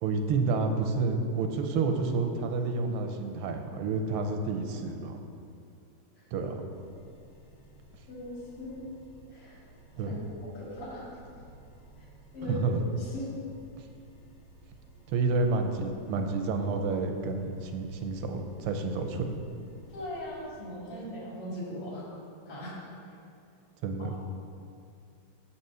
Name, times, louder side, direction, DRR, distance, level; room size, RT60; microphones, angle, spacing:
voice 1, 0.0-5.2 6.3-6.6 10.0-10.2 12.4-12.8 15.1-19.4 23.8-24.2, right 3 dB, 90° right, 5 dB, 1.6 m, -29 dB
sound 1, 6.7-20.4, right 1 dB, 25° left, 1.3 m, -55 dB
voice 2, 8.1-8.8 9.3-9.6 10.0-11.1 12.0-12.1 12.3-12.6 13.0-13.3 19.9-22.1 22.5-23.1 24.0-24.1, left 1 dB, 90° left, -6 dB, 3.1 m, -40 dB
7.7 x 4.3 x 6.7 m, 2.5 s
omnidirectional pair, 2.4 m